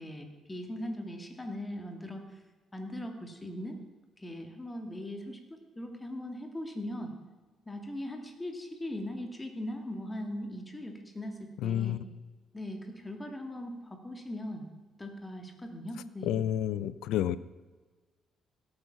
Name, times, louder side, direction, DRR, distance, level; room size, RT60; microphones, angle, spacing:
voice 1, 0.0-2.4 2.7-3.8 4.2-7.1 7.7-12.0 12.5-14.7 15.0-16.4, left 1 dB, 15° left, 4 dB, 2.4 m, -40 dB
voice 2, 11.6-12.1 16.2-17.4, left 11 dB, 85° left, 16 dB, 0.5 m, -30 dB
16.5 x 8.9 x 5.9 m, 1.3 s
cardioid pair, 90°, 0 cm